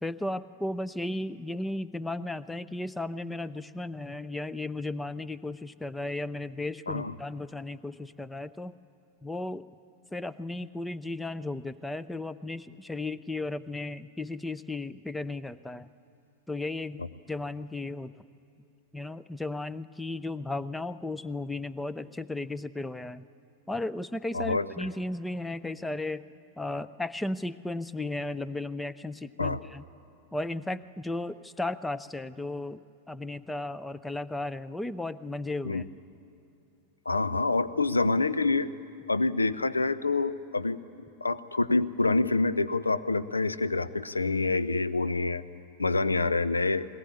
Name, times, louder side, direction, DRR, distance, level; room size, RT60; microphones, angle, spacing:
voice 1, 0.0-8.7 9.2-9.7 10.1-15.9 16.5-17.0 17.3-18.2 18.9-23.2 23.7-26.3 26.6-29.8 30.3-32.8 33.1-35.8, left 2 dB, 5° left, 16 dB, 0.6 m, -35 dB
voice 2, 24.3-24.9 29.4-29.6 35.6-35.8 37.1-38.7 39.1-40.8 41.2-45.4 45.8-46.9, left 3 dB, 80° left, 14 dB, 0.7 m, -27 dB
21.0 x 19.5 x 9.7 m, 2.6 s
figure-of-eight pair, 90°, 0 cm